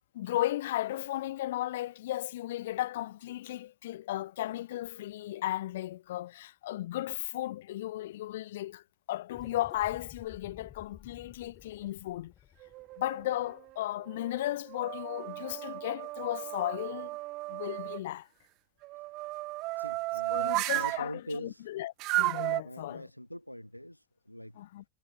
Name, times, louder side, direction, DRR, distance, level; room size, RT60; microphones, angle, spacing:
voice 1, 0.1-12.3 13.0-17.2 17.5-18.3 20.3-23.1 24.5-24.8, left 14 dB, 55° left, 0.9 m, -35 dB
sound 1, 9.3-14.0, left 10 dB, 25° left, 4.2 m, -53 dB
sound 2, 12.6-13.5 14.1-18.0 18.8-21.0 22.0-22.6, right 20 dB, 40° right, 0.3 m, -34 dB
voice 2, 19.8-21.6 22.6-24.6, equal, 90° left, 0.5 m, -43 dB
figure-of-eight pair, 90°, 0 cm